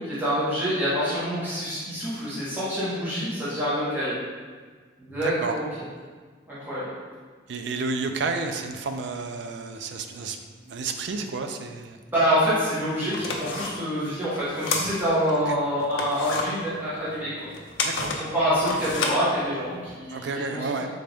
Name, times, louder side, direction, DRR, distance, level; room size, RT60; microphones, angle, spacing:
voice 1, 0.0-4.1 5.0-5.6 6.5-6.8 12.1-17.5 18.2-20.8, equal, 10° right, -12 dB, 1.1 m, -26 dB
voice 2, 5.1-5.6 7.5-10.4 10.6-12.0 15.5-15.6 17.8-18.2 20.1-20.9, right 4 dB, 65° right, 6 dB, 0.4 m, -31 dB
sound 1, 12.5-12.6 13.0-15.4 15.8-19.9, left 3 dB, 85° left, 0.5 m, -31 dB
3.9 x 3.3 x 3.4 m, 1.5 s
head